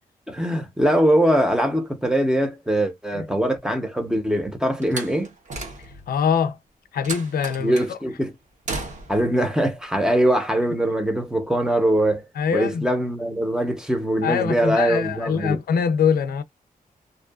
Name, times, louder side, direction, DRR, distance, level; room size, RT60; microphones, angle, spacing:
voice 1, 0.3-5.3 7.6-8.3 9.1-12.3 12.5-15.6, right 1 dB, 5° right, 0.6 m, -22 dB
Slam, 4.8-6.2 7.0-7.9 8.7-9.3, right 3 dB, 50° right, 0.8 m, -34 dB
voice 2, 6.1-6.6 6.9-8.0 12.4-12.9 14.2-16.4, left 7 dB, 75° left, 0.4 m, -23 dB
2.6 x 2.3 x 2.2 m
wide cardioid pair, 125°, 15 cm